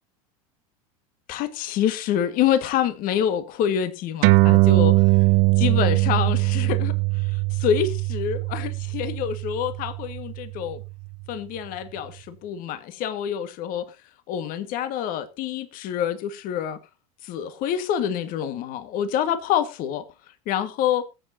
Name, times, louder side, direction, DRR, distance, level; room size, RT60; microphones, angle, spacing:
voice 1, 1.3-5.2 5.6-10.8 11.3-14.0 14.3-16.8 17.2-20.1 20.4-21.1, left 9 dB, 50° left, 1.7 m, -27 dB
sound 1, 4.2-11.1, right 26 dB, 60° right, 0.7 m, -21 dB
21.5 x 7.8 x 2.7 m
supercardioid pair, 115°, 18 cm